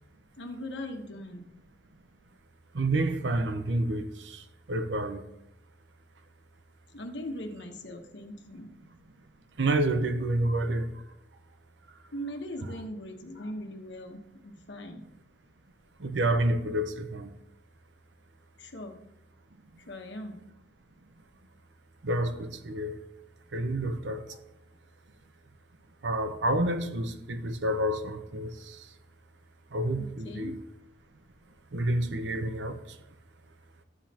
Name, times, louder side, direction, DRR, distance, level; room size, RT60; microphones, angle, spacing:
voice 1, 0.4-1.5 6.9-8.7 12.1-15.1 18.6-19.0 19.9-20.4 30.0-30.5, equal, 80° left, 1.2 m, -40 dB
voice 2, 2.7-5.2 9.6-10.9 16.0-17.3 22.0-23.0 23.5-24.3 26.0-28.8 29.7-30.6 31.7-32.8, right 1 dB, 85° right, 0.8 m, -29 dB
12.5 x 7.4 x 2.9 m
head